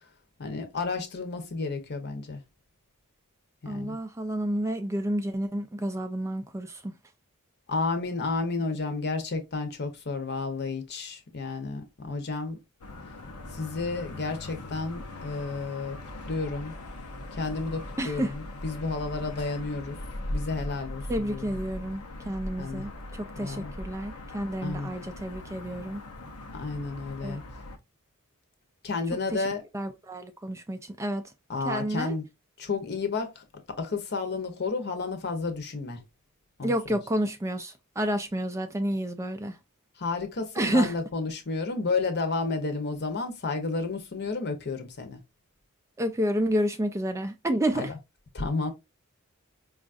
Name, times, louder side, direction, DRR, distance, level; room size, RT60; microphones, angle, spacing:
voice 1, 0.4-2.4 3.6-4.0 7.7-12.6 13.5-16.0 16.3-16.7 17.3-20.0 20.3-21.6 22.6-22.9 23.4-23.7 24.6-24.9 26.5-27.4 28.8-29.6 31.5-32.3 32.6-36.0 36.6-37.0 40.0-45.2 47.7-47.9 48.3-48.7, left 3 dB, 50° left, 0.8 m, -31 dB
voice 2, 3.7-6.9 18.0-18.3 21.1-26.0 27.2-27.4 29.3-29.4 29.7-31.3 31.7-32.1 36.6-39.6 40.6-40.9 46.0-47.9, right 1 dB, 15° right, 0.3 m, -30 dB
sound 1, 12.8-27.8, left 1 dB, 90° left, 0.7 m, -40 dB
4.9 x 2.4 x 2.5 m
head